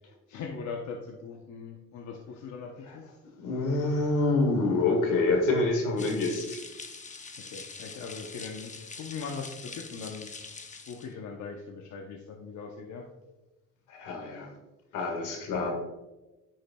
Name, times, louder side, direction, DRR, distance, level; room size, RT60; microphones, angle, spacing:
voice 1, 0.3-3.1 7.5-10.3 10.9-13.1 15.2-15.3, left 5 dB, 65° left, 1 dB, 0.9 m, -40 dB
voice 2, 3.4-6.6 13.9-14.6 14.9-15.7, left 3 dB, 85° left, 2 dB, 1.8 m, -27 dB
sound 1, 6.0-11.1, left 4 dB, 25° left, 0.7 m, -44 dB
9.9 x 6.4 x 2.3 m, 1.1 s
cardioid pair, 90°, 30 cm